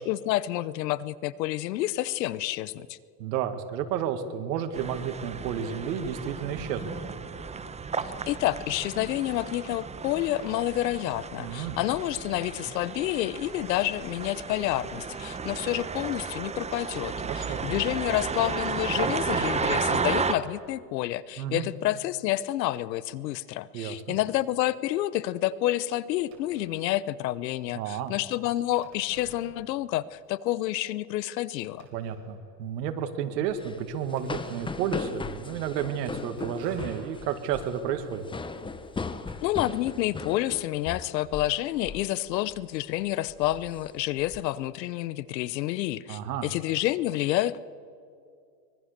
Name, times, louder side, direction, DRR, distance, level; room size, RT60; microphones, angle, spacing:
voice 1, 0.0-3.0 8.3-31.9 39.4-47.6, left 15 dB, 85° left, 18 dB, 1.0 m, -29 dB
voice 2, 3.2-6.9 11.4-11.8 17.2-17.7 21.4-21.7 23.7-24.2 27.7-28.1 31.9-38.3 46.1-46.5, right 8 dB, 80° right, 7 dB, 2.3 m, -31 dB
sound 1, 4.7-20.3, right 5 dB, 15° right, 1.0 m, -33 dB
sound 2, 26.3-27.1 28.8-30.2 30.5-30.6 31.1-31.2 31.8-32.6 34.2-40.0, right 5 dB, 60° right, 4.9 m, -53 dB
sound 3, 33.5-41.6 41.8-42.1 42.5-42.8 43.3-44.4, left 4 dB, 10° left, 0.9 m, -38 dB
24.0 x 21.5 x 6.8 m, 2.3 s
supercardioid pair, 130°, 49 cm